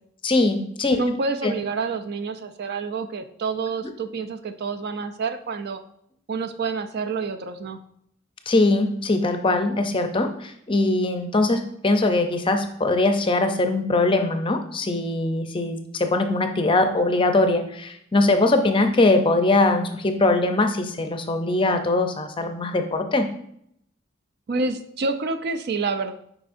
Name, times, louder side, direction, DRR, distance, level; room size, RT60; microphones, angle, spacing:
voice 1, 0.2-1.0 1.4-1.5 8.5-23.3, left 2 dB, 25° left, 6 dB, 0.5 m, -21 dB
voice 2, 0.9-5.8 6.3-7.8 24.5-26.1, right 4 dB, 50° right, 8 dB, 0.4 m, -28 dB
8.4 x 5.0 x 2.6 m, 0.72 s
head